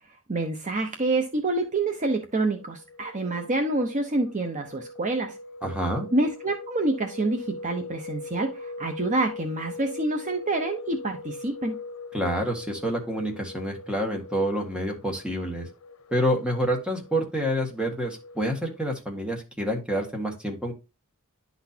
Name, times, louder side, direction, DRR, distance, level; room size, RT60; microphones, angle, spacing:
voice 1, 0.3-5.4 6.1-11.8, right 2 dB, 35° right, 5 dB, 0.7 m, -27 dB
sound 1, 1.2-19.0, left 3 dB, 90° left, 0.8 m, -42 dB
voice 2, 5.6-6.1 12.1-15.7 16.1-20.7, equal, 5° right, 0 dB, 1.4 m, -28 dB
11.0 x 4.1 x 2.8 m, 0.28 s
head